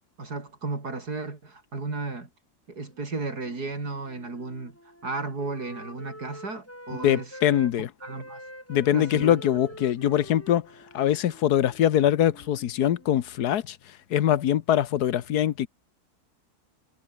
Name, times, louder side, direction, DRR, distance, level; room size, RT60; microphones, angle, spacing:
voice 1, 0.2-2.3 2.7-4.7 5.0-7.3 8.0-8.4 8.9-9.4, right 3 dB, 80° right, 4.6 m, -34 dB
Wind instrument woodwind instrument, 2.8-7.7 8.0-13.3, equal, 10° left, 5.7 m, -46 dB
voice 2, 6.9-7.9 8.7-10.7 10.9-13.8 14.1-15.7, left 11 dB, 80° left, 1.5 m, -23 dB
omnidirectional pair, 1.7 m